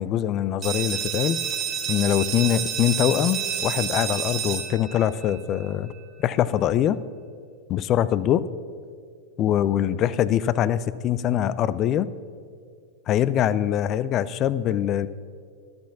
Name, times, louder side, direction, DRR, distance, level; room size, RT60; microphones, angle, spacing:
voice 1, 0.0-1.4 1.9-5.9 6.2-7.0 7.7-8.4 9.4-12.1 13.1-15.1, left 11 dB, 35° left, 17 dB, 0.4 m, -23 dB
sound 1, 0.6-6.1, right 8 dB, 35° right, 1.3 m, -29 dB
13.5 x 6.1 x 5.9 m, 2.1 s
figure-of-eight pair, 90°, 0 cm